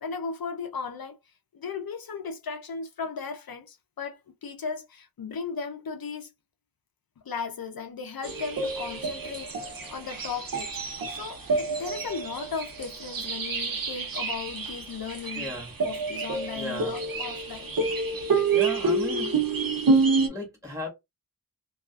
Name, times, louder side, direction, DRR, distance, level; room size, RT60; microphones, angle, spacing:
voice 1, 0.0-1.2 1.5-6.3 7.2-10.8 11.1-15.5 15.8-17.7, left 5 dB, 80° left, 0.5 m, -36 dB
sound 1, 8.2-20.3, right 4 dB, 70° right, 0.8 m, -28 dB
voice 2, 15.3-15.7 16.5-16.9 18.5-19.3 20.3-20.9, left 1 dB, 10° right, 1.6 m, -35 dB
2.4 x 2.3 x 2.3 m
wide cardioid pair, 45°, 36 cm